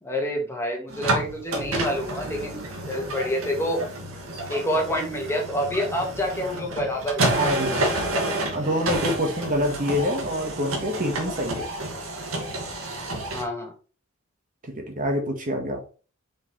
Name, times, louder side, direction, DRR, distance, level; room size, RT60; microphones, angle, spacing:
voice 1, 0.0-2.6 2.9-3.8 4.5-7.4 8.3-8.4 13.3-13.7, equal, 15° left, 1 dB, 1.7 m, -27 dB
sound 1, 0.9-13.4, right 1 dB, 85° right, 2.0 m, -29 dB
voice 2, 7.3-7.9 8.5-11.7 14.7-15.8, equal, 40° right, 2 dB, 1.5 m, -26 dB
6.4 x 5.3 x 3.3 m, 0.36 s
head